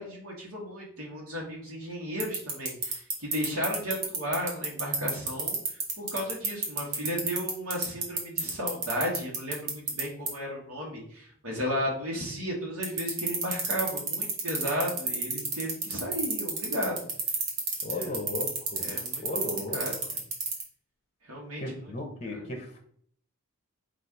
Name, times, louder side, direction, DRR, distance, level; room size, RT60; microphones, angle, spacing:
voice 1, 0.0-5.6 6.0-17.0 17.9-18.2 18.8-20.0 21.2-21.9 22.3-22.5, equal, 75° right, -3 dB, 1.2 m, -34 dB
sound 1, 2.2-10.0 10.3-10.4 12.8-20.6, right 5 dB, 55° right, 1.2 m, -28 dB
voice 2, 17.8-18.9 19.2-19.8 21.6-22.8, left 1 dB, 30° left, 1 dB, 0.7 m, -35 dB
4.0 x 2.4 x 4.6 m, 0.62 s
head